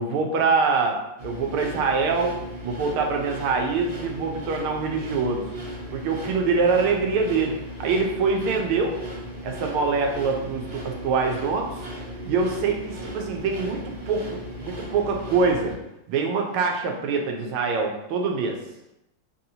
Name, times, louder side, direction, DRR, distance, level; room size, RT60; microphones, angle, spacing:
voice 1, 0.0-2.3 2.6-5.5 5.9-9.0 9.4-11.8 12.2-15.8 16.1-18.6, right 4 dB, 85° right, 2 dB, 1.5 m, -24 dB
sound 1, 1.2-15.8, equal, 70° right, 1.6 m, -37 dB
3.9 x 2.7 x 2.7 m, 0.86 s
omnidirectional pair, 2.3 m